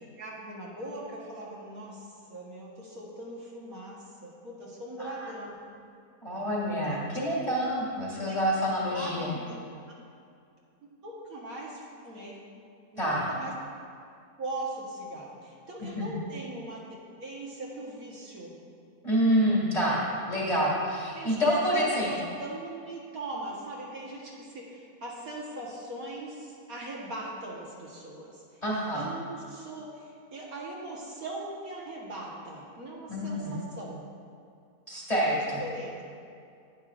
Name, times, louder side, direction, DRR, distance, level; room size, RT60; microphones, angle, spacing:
voice 1, 0.0-5.6 6.8-7.0 7.4-7.6 8.2-8.4 8.9-9.5 11.0-12.4 12.9-13.5 14.4-16.8 17.2-18.5 20.7-20.8 21.1-21.3 21.7-28.6 28.9-34.0 35.3-36.0, right 2 dB, 60° right, -5 dB, 1.7 m, -40 dB
voice 2, 5.0-5.3 6.2-9.3 13.0-13.3 15.8-16.1 19.0-22.1 28.6-29.1 33.1-33.6 34.9-35.6, equal, 20° left, -5 dB, 2.3 m, -27 dB
11.0 x 10.0 x 2.5 m, 2.4 s
omnidirectional pair, 1.8 m